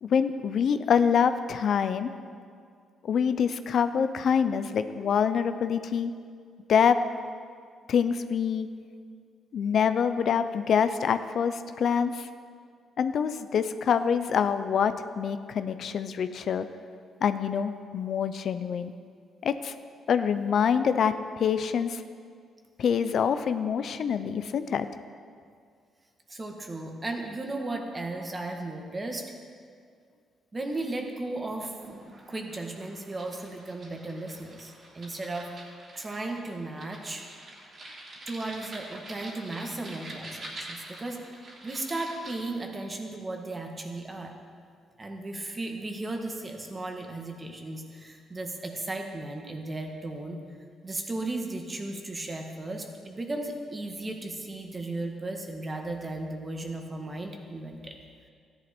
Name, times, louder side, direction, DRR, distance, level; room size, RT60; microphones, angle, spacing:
voice 1, 0.0-2.1 3.0-6.1 6.7-7.0 7.9-8.7 9.5-12.3 13.0-16.7 17.2-18.9 19.4-19.7 20.1-22.0 22.8-24.9, left 7 dB, 60° left, 11 dB, 0.5 m, -25 dB
voice 2, 26.3-29.3 30.5-31.8 32.0-35.5 35.9-37.3 38.3-44.3 45.0-50.4 50.8-58.0, right 2 dB, 25° right, 2 dB, 1.7 m, -35 dB
sound 1, 31.8-42.4, right 2 dB, 45° right, 3.1 m, -46 dB
14.0 x 10.5 x 4.5 m, 2.1 s
cardioid pair, 90°, 0 cm